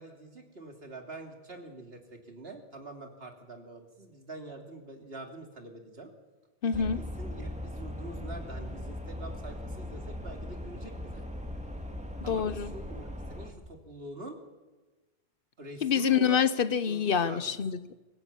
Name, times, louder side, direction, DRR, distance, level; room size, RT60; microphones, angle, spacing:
voice 1, 0.0-6.1 6.6-11.3 12.2-14.4 15.6-16.5 16.9-17.6, right 2 dB, 75° right, 4 dB, 3.1 m, -45 dB
voice 2, 6.6-7.0 12.3-12.7 15.8-18.0, left 7 dB, 65° left, 15 dB, 1.0 m, -27 dB
sound 1, 6.7-13.5, left 1 dB, 5° right, 2.2 m, -39 dB
24.5 x 16.0 x 8.4 m, 1.2 s
omnidirectional pair, 1.0 m